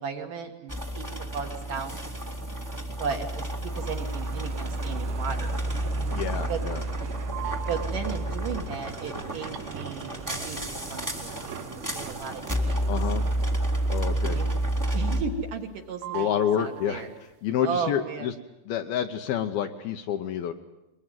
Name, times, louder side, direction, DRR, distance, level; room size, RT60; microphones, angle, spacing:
voice 1, 0.0-2.0 3.0-3.5 3.8-5.6 6.5-6.6 7.7-11.5 11.9-13.0 14.3-14.5 14.9-17.1 17.6-18.3, right 6 dB, 55° right, 4 dB, 2.8 m, -35 dB
sound 1, 0.7-15.2, right 1 dB, 10° right, 1.2 m, -30 dB
sound 2, 3.4-14.9 15.2-15.8 16.0-17.3, right 11 dB, 85° right, 3.4 m, -41 dB
voice 2, 6.1-6.8 12.9-13.2 13.9-14.4 16.1-18.3 18.7-20.5, left 9 dB, 70° left, 7 dB, 2.5 m, -28 dB
22.5 x 22.0 x 9.3 m, 0.94 s
omnidirectional pair, 5.2 m